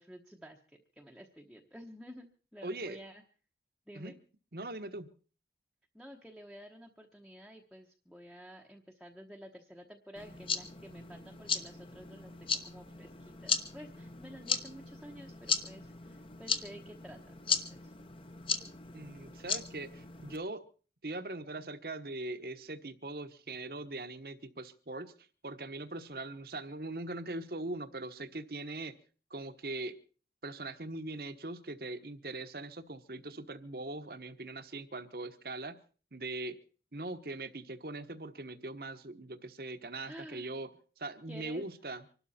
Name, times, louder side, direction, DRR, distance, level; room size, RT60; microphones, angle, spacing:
voice 1, 0.0-3.2 3.9-4.2 5.9-17.9 40.0-40.5 41.3-41.7, equal, ahead, 0 dB, 1.0 m, -51 dB
voice 2, 2.6-3.0 3.9-4.1 4.5-5.1 18.9-20.6 21.0-25.1 25.4-28.9 29.3-30.0 30.4-35.8 36.1-36.6 36.9-40.7 41.0-42.0, right 2 dB, 55° right, 10 dB, 1.2 m, -41 dB
sound 1, 10.2-20.4, left 6 dB, 30° left, 1.0 m, -37 dB
25.5 x 12.5 x 4.3 m, 0.40 s
head